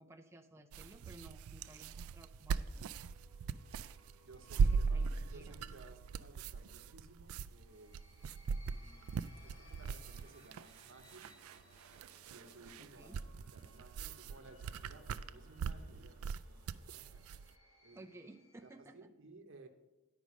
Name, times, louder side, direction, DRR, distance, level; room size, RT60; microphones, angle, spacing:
voice 1, 0.0-3.0 4.6-5.6 12.8-13.2 17.9-19.1, right 1 dB, 10° right, 4 dB, 0.4 m, -56 dB
sound 1, 0.7-17.5, right 5 dB, 75° right, 0.3 m, -39 dB
sound 2, 2.1-18.9, left 1 dB, 80° left, 1.8 m, -66 dB
voice 2, 4.2-5.0 5.3-8.0 8.7-11.3 12.3-16.2 16.5-16.6 16.9-18.1 18.6-19.7, right 2 dB, 60° right, 5 dB, 0.9 m, -58 dB
9.7 x 5.2 x 6.2 m, 1.1 s
head